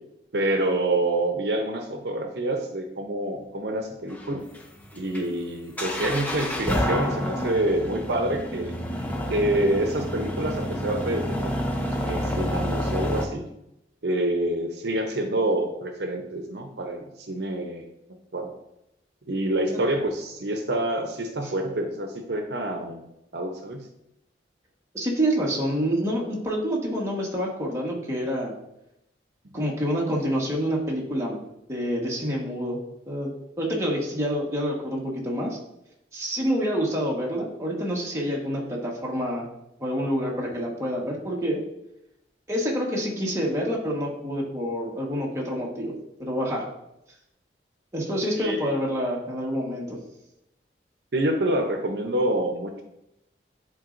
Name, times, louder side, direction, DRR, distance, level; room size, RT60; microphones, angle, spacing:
voice 1, 0.3-4.5 4.9-8.7 9.3-11.5 12.1-13.5 14.0-17.9 18.3-18.5 19.3-23.0 23.3-23.8 29.5-29.6 48.3-48.7 51.1-52.8, right 1 dB, 70° right, 4 dB, 0.7 m, -27 dB
sound 1, 4.1-13.2, equal, 10° left, 0.7 m, -29 dB
voice 2, 24.9-28.5 29.5-31.4 31.7-32.8 33.1-35.6 36.1-39.4 39.8-41.6 42.5-45.9 46.2-46.6 47.9-50.0, equal, 15° right, -3 dB, 1.3 m, -27 dB
10.5 x 4.0 x 2.6 m, 0.84 s
head